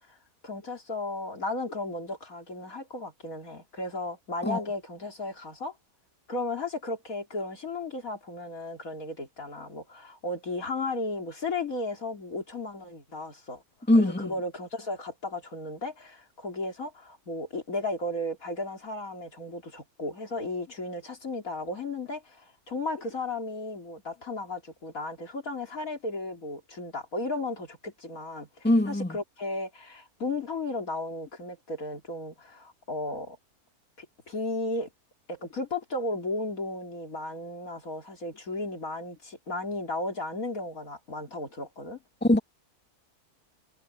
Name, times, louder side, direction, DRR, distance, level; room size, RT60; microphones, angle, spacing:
voice 1, 0.4-5.7 6.3-13.6 14.0-33.4 34.0-34.9 35.3-42.0, left 2 dB, 60° left, 3.6 m, -35 dB
voice 2, 13.9-14.3 28.6-29.2 42.2-42.4, left 1 dB, 5° left, 2.5 m, -22 dB
omnidirectional pair, 1.6 m